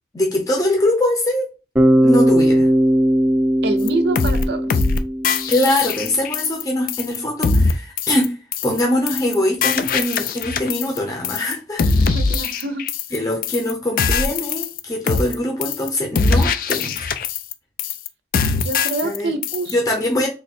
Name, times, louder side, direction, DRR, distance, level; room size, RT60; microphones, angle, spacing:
voice 1, 0.1-1.5 2.0-2.7 5.5-8.4 8.6-12.1 13.1-17.1 19.0-19.3 19.7-20.3, left 1 dB, 20° left, 0 dB, 0.7 m, -22 dB
Bass guitar, 1.8-5.8, equal, 10° right, 0.5 m, -18 dB
voice 2, 3.6-4.8 12.0-12.8 18.6-19.8, right 3 dB, 70° right, 9 dB, 0.5 m, -26 dB
sound 1, 3.9-4.0 4.2-4.4 4.7-5.0 5.2-6.6 6.9-7.2 7.4-7.7 8.0-8.3 8.5-8.8 9.1-9.3 9.6-11.0 11.2-11.5 11.8-13.2 13.4-13.7 14.0-14.8 15.1-15.3 15.6-15.9 16.2-17.5 17.8-18.1 18.3-19.2 19.4-19.7, left 4 dB, 50° left, 0.3 m, -21 dB
3.4 x 2.1 x 4.1 m, 0.32 s
head